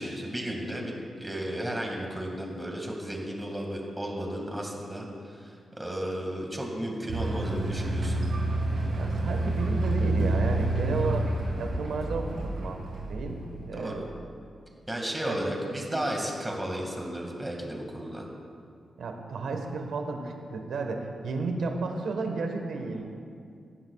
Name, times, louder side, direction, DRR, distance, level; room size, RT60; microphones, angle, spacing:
voice 1, 0.0-8.2 13.7-14.0 14.9-18.3, right 1 dB, 10° right, 0 dB, 2.0 m, -34 dB
sound 1, 7.1-14.0, right 2 dB, 65° right, 2.8 m, -29 dB
voice 2, 9.0-13.4 13.7-14.0 15.2-15.4 19.0-23.0, right 3 dB, 85° right, 4 dB, 1.3 m, -32 dB
17.5 x 15.0 x 2.4 m, 2.3 s
wide cardioid pair, 145°, 0 cm